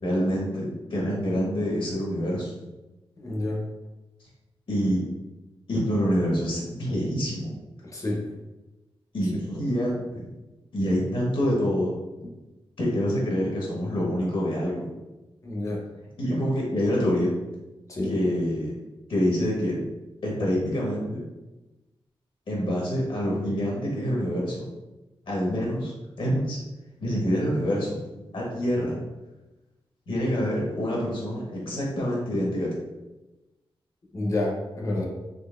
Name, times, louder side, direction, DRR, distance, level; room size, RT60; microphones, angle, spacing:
voice 1, 0.0-2.5 4.7-5.0 5.7-7.5 9.1-10.3 10.7-11.9 12.8-14.9 16.2-17.3 18.0-18.7 19.1-19.8 20.2-21.2 22.5-24.7 25.3-26.6 27.0-29.0 30.1-32.7, equal, 65° left, -3 dB, 1.0 m, -26 dB
voice 2, 3.2-3.6 7.8-8.2 15.4-15.8 17.9-18.1 34.1-35.0, left 2 dB, 35° left, -2 dB, 0.7 m, -28 dB
3.8 x 3.0 x 2.3 m, 1.1 s
wide cardioid pair, 155°, 10 cm